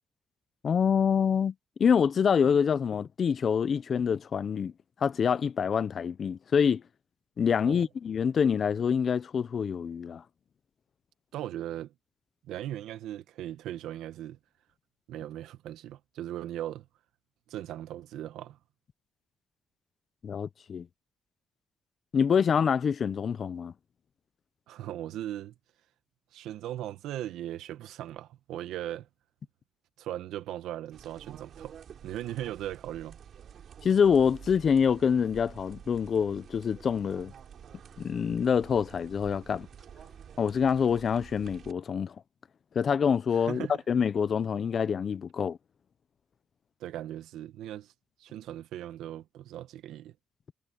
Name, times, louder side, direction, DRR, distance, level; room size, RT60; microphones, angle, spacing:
voice 1, 0.6-1.5 1.8-4.7 5.0-6.8 7.4-10.2 20.2-20.9 22.1-23.7 33.8-37.3 38.0-39.7 40.4-42.1 42.7-45.6, left 7 dB, 50° left, 0.8 m, -26 dB
voice 2, 11.3-11.9 12.4-14.4 15.1-16.9 17.5-18.6 24.7-25.5 26.3-29.1 30.0-31.8 32.0-33.2 43.3-43.7 46.8-47.9 48.2-50.1, right 12 dB, 85° right, 1.5 m, -38 dB
sound 1, 30.9-41.7, right 8 dB, 60° right, 3.6 m, -50 dB
cardioid pair, 90°, 0 cm